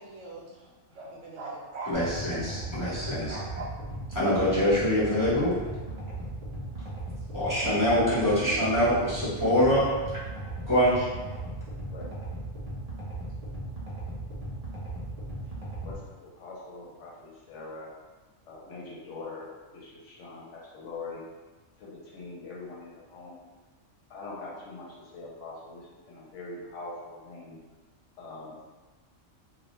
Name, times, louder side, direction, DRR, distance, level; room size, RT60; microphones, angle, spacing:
voice 1, 0.0-1.9 3.2-3.6, right 3 dB, 70° right, -4 dB, 0.9 m, -41 dB
voice 2, 1.9-3.4 4.1-5.6 7.3-9.9 10.7-11.1, equal, 25° left, -11 dB, 0.5 m, -24 dB
sound 1, 1.9-15.9, right 1 dB, 55° right, 0.4 m, -37 dB
voice 3, 15.8-17.9 18.5-21.2 21.8-23.4 24.1-27.6 28.2-28.7, left 3 dB, 70° left, -4 dB, 0.9 m, -43 dB
2.3 x 2.1 x 2.9 m, 1.3 s
omnidirectional pair, 1.4 m